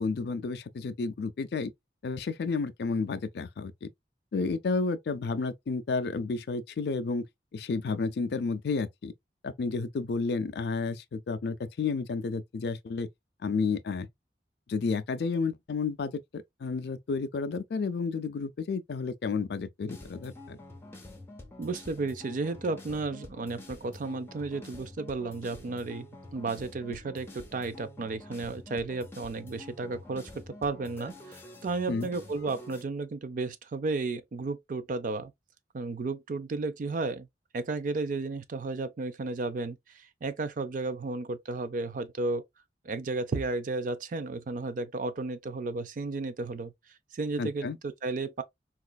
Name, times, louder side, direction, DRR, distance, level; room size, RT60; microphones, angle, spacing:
voice 1, 0.0-1.7 2.0-3.9 4.3-7.3 7.5-9.1 9.4-13.1 13.4-14.1 14.7-20.6 31.9-32.1 47.4-47.8, left 4 dB, 60° left, 0.4 m, -31 dB
sound 1, 19.9-32.8, left 1 dB, 15° left, 0.7 m, -47 dB
voice 2, 21.6-35.3 35.7-37.3 37.5-42.4 42.8-46.7 47.1-48.4, right 3 dB, 45° right, 0.4 m, -33 dB
4.0 x 2.4 x 2.3 m
head